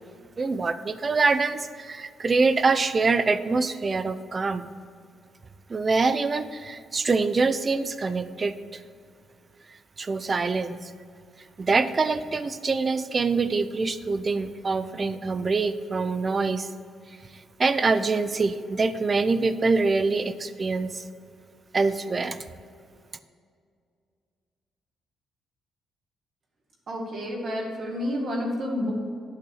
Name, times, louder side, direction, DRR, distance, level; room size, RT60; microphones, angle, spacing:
voice 1, 0.4-4.7 5.7-8.8 10.0-10.9 11.6-16.7 17.6-21.0 21.7-22.4, right 4 dB, 35° right, 12 dB, 0.5 m, -25 dB
voice 2, 26.9-28.9, equal, 50° right, -1 dB, 2.0 m, -29 dB
8.9 x 5.8 x 6.4 m, 2.3 s
cardioid pair, 90°, 0 cm